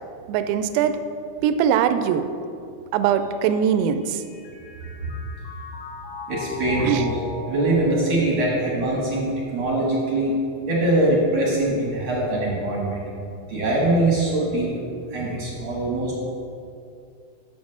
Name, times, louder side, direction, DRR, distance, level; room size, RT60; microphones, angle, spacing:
voice 1, 0.3-1.0 1.4-2.3 2.9-4.2 6.8-7.1, right 8 dB, 80° right, 9 dB, 2.3 m, -21 dB
Mallet percussion, 3.1-9.6, left 2 dB, 85° left, 2.9 m, -37 dB
voice 2, 6.3-7.2 7.5-10.4 10.7-13.0 13.5-14.7 15.1-16.2, right 1 dB, 60° right, -4 dB, 1.3 m, -22 dB
7.3 x 6.4 x 6.2 m, 2.5 s
omnidirectional pair, 4.5 m